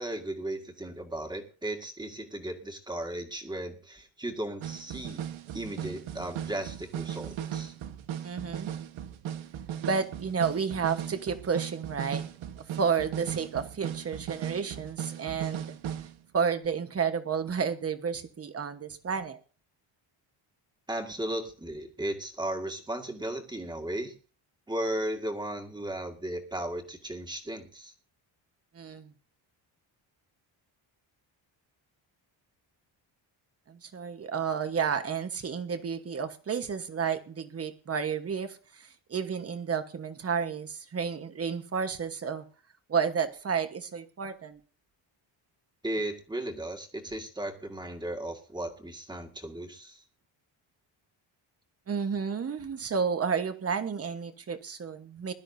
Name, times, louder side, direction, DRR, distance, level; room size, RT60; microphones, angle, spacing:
voice 1, 0.0-5.2 5.5-7.7 20.9-24.1 24.7-27.9 45.8-50.0, right 1 dB, 10° right, 4 dB, 2.0 m, -35 dB
sound 1, 4.6-16.2 16.6-16.7, right 10 dB, 90° right, 1.4 m, -37 dB
voice 2, 8.2-8.7 9.9-12.2 12.6-16.1 16.3-19.4 28.7-29.1 33.7-42.4 42.9-44.6 51.9-55.3, right 6 dB, 30° right, 9 dB, 1.3 m, -31 dB
21.5 x 12.5 x 2.7 m, 0.36 s
cardioid pair, 165°, 47 cm